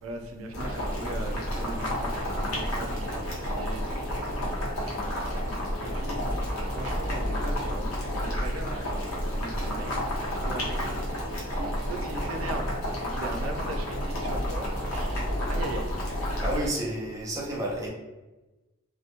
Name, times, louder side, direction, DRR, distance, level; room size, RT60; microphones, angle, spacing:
voice 1, 0.0-4.0 4.9-5.5 5.8-6.3 6.6-9.0 9.3-10.0 10.2-11.0 11.6-12.7 13.0-15.2 15.5-16.0, right 2 dB, 75° right, 3 dB, 0.4 m, -39 dB
Boiling, 0.5-16.7, equal, 80° left, 0.7 m, -30 dB
voice 2, 16.4-17.9, right 1 dB, 15° right, -3 dB, 0.4 m, -30 dB
2.1 x 2.1 x 2.8 m, 1.1 s
head